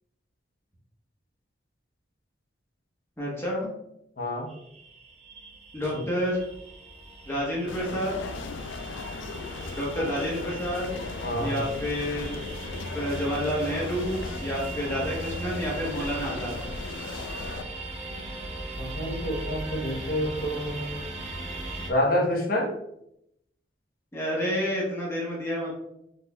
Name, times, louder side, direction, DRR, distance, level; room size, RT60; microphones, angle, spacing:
voice 1, 3.2-3.7 5.7-6.4 7.3-8.2 9.7-10.9 11.4-12.4 12.9-16.6 24.1-25.7, equal, 15° left, -5 dB, 0.9 m, -29 dB
voice 2, 4.2-4.5 5.9-6.0 11.2-11.5 18.8-21.0 21.9-22.7, left 1 dB, 50° left, -1 dB, 0.9 m, -28 dB
sound 1, 4.5-21.9, right 2 dB, 35° right, 0.6 m, -38 dB
sound 2, 7.7-17.6, left 4 dB, 80° left, 0.3 m, -38 dB
4.0 x 3.2 x 2.2 m, 0.79 s
head